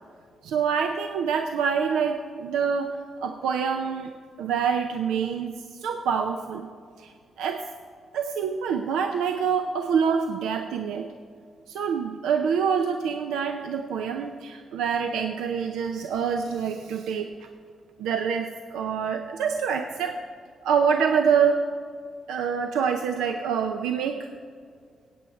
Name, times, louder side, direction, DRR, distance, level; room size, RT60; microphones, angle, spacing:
voice 1, 0.4-4.1 4.4-6.7 7.0-7.7 8.1-11.1 11.7-17.3 18.0-20.2 20.6-21.6 22.3-24.3, right 6 dB, 85° right, 6 dB, 0.5 m, -26 dB
15.5 x 8.6 x 4.5 m, 2.1 s
supercardioid pair, 55°, 0 cm